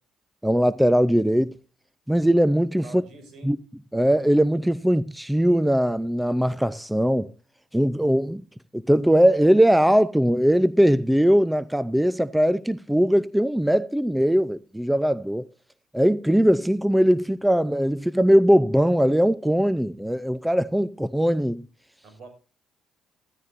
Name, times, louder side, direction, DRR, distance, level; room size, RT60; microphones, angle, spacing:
voice 1, 0.4-1.5 2.1-3.0 3.4-3.6 3.9-7.3 7.7-8.4 8.7-15.5 15.9-21.7, equal, 5° right, 0.6 m, -20 dB
voice 2, 2.8-3.5 22.0-22.3, right 3 dB, 65° right, 5.7 m, -45 dB
14.5 x 14.0 x 2.6 m
hypercardioid pair, 55°, 0 cm